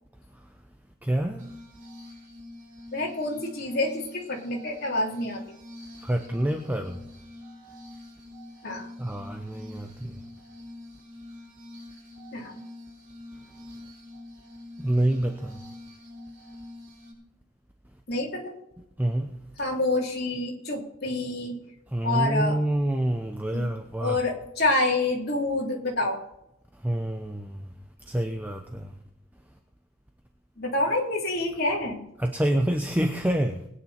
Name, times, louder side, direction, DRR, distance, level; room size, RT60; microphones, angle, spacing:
voice 1, 1.0-1.5 6.0-7.0 9.0-10.2 14.8-15.6 19.0-19.4 21.9-24.2 26.7-27.7 28.0-28.9 32.2-33.7, right 1 dB, 10° right, 0.8 m, -27 dB
Glass, 1.4-17.1, left 1 dB, 40° right, 6.2 m, -45 dB
voice 2, 2.9-5.4 8.6-8.9 12.3-12.5 18.1-18.5 19.6-21.6 22.0-22.6 23.5-23.7 24.0-26.2 30.6-32.0, left 2 dB, 50° left, 3.5 m, -27 dB
20.0 x 9.7 x 4.4 m
head